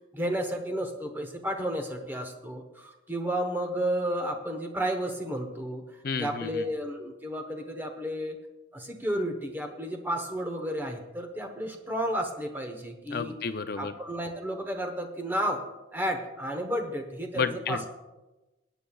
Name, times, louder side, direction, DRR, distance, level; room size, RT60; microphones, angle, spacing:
voice 1, 0.1-5.8 6.2-8.4 8.7-13.4 13.8-15.6 15.9-17.8, equal, 10° right, 4 dB, 1.0 m, -32 dB
voice 2, 6.0-6.7 13.1-14.0 17.3-17.9, left 5 dB, 50° left, 10 dB, 0.5 m, -31 dB
20.5 x 9.0 x 2.3 m, 1.1 s
head